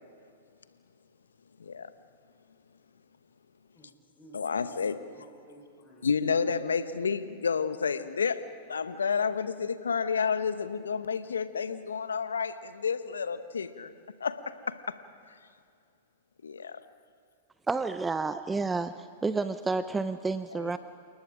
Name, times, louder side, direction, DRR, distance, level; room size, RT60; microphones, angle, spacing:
voice 1, 3.7-4.8 5.1-6.1, right 2 dB, 10° left, -5 dB, 4.5 m, -55 dB
voice 2, 4.3-5.0 6.0-8.4 8.7-13.9 14.2-14.7 16.4-16.8 20.5-20.7, left 6 dB, 80° left, 12 dB, 1.0 m, -30 dB
voice 3, 17.7-20.8, right 3 dB, 10° right, 12 dB, 0.6 m, -30 dB
29.0 x 19.0 x 5.0 m, 2.3 s
hypercardioid pair, 105°, 0 cm